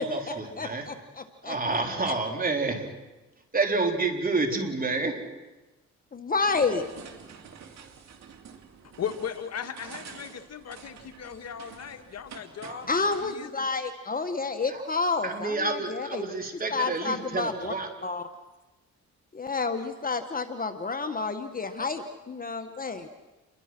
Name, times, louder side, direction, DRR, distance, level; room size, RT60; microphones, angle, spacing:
voice 1, 0.0-0.9 1.4-3.0 3.5-5.2 12.6-12.8 14.7-14.8 15.2-17.9, right 3 dB, 30° right, 3 dB, 4.2 m, -29 dB
voice 2, 0.6-1.5 6.1-6.9 12.9-16.3 16.7-17.7 18.0-18.2 19.3-23.1, left 4 dB, 30° left, 7 dB, 1.6 m, -30 dB
sound 1, 6.4-13.4, right 6 dB, 60° right, 2.8 m, -48 dB
voice 3, 9.0-13.9, left 8 dB, 55° left, 7 dB, 1.9 m, -37 dB
29.0 x 22.5 x 6.2 m, 1.1 s
cardioid pair, 90°, 30 cm